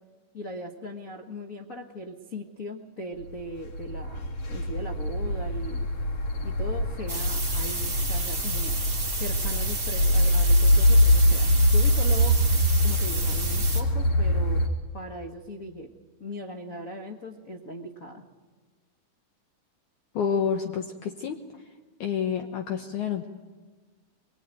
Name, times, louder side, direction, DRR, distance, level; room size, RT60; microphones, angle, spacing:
voice 1, 0.3-5.9 6.4-8.8 9.2-12.4 12.8-14.6 14.9-15.9 16.2-18.2, left 1 dB, 85° left, 3 dB, 0.7 m, -39 dB
sound 1, 3.4-14.7, equal, 45° left, 3.9 m, -23 dB
sound 2, 7.1-13.8, right 3 dB, 20° right, 3.5 m, -32 dB
voice 2, 20.1-21.7 22.0-23.3, left 7 dB, 65° left, 3 dB, 2.3 m, -29 dB
24.5 x 22.0 x 9.1 m, 1.4 s
omnidirectional pair, 4.3 m